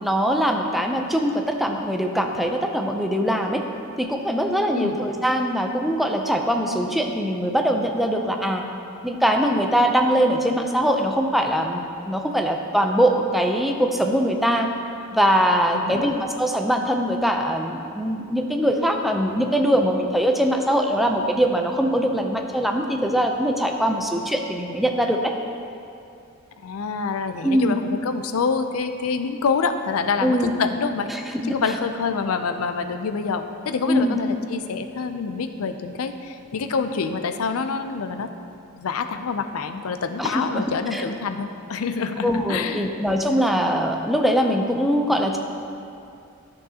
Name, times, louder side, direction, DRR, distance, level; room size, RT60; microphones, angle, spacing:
voice 1, 0.0-3.6 4.0-8.6 9.0-14.7 15.1-25.3 27.4-27.8 30.2-30.5 31.1-31.6 33.9-34.2 40.2-40.7 40.9-41.0 42.2-45.4, equal, ahead, 3 dB, 0.5 m, -22 dB
voice 2, 4.7-5.1 15.7-16.1 26.6-31.1 31.4-38.3 38.7-42.9, left 5 dB, 75° left, 8 dB, 0.5 m, -26 dB
11.0 x 6.3 x 2.8 m, 2.6 s
head